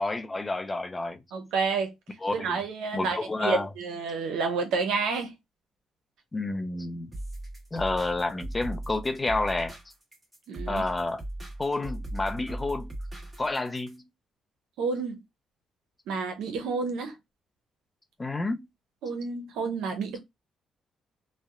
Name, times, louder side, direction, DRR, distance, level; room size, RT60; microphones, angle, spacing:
voice 1, 0.0-1.2 2.2-2.6 2.9-3.7 6.3-7.1 7.7-9.8 10.7-11.2 11.6-12.9 13.4-14.0 18.2-18.7, left 2 dB, 25° left, 0.5 m, -29 dB
voice 2, 1.3-1.9 2.3-5.3 10.5-10.8 14.8-15.2 16.1-17.1 19.0-20.2, right 4 dB, 85° right, 0.6 m, -30 dB
sound 1, 7.1-14.0, right 1 dB, 10° right, 1.3 m, -38 dB
2.7 x 2.0 x 2.3 m
cardioid pair, 90°, 0 cm